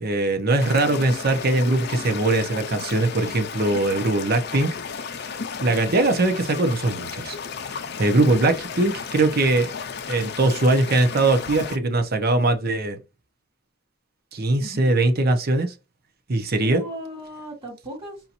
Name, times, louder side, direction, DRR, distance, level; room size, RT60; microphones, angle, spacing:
voice 1, 0.0-4.8 5.6-7.4 8.0-9.7 10.1-13.0 14.3-15.7 16.3-16.8, right 2 dB, 55° right, 0.7 m, -21 dB
sound 1, 0.6-11.8, left 6 dB, 60° left, 0.5 m, -34 dB
voice 2, 0.9-1.2 1.5-2.1 8.0-8.5 14.6-14.9 16.6-18.2, equal, 30° right, 2.4 m, -38 dB
5.5 x 2.8 x 2.5 m
head